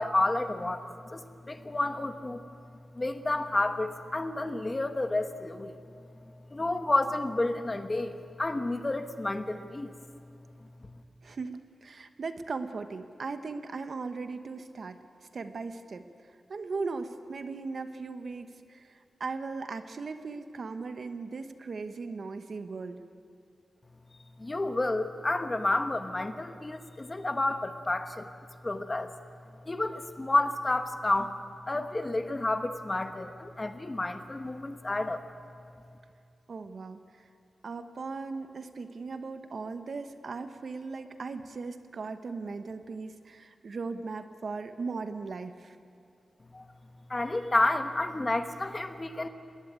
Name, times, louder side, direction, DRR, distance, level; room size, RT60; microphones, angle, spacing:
voice 1, 0.0-2.5 2.9-5.8 6.5-10.0 10.8-10.9 24.4-28.3 28.6-29.1 29.6-31.4 31.6-35.2 46.5-46.7 47.1-49.3, left 2 dB, 25° left, 9 dB, 1.2 m, -30 dB
voice 2, 11.2-15.0 15.3-16.1 16.5-23.0 36.5-37.3 37.6-45.8, right 4 dB, 55° right, 9 dB, 1.1 m, -38 dB
20.0 x 19.0 x 9.5 m, 2.5 s
wide cardioid pair, 135°, 0 cm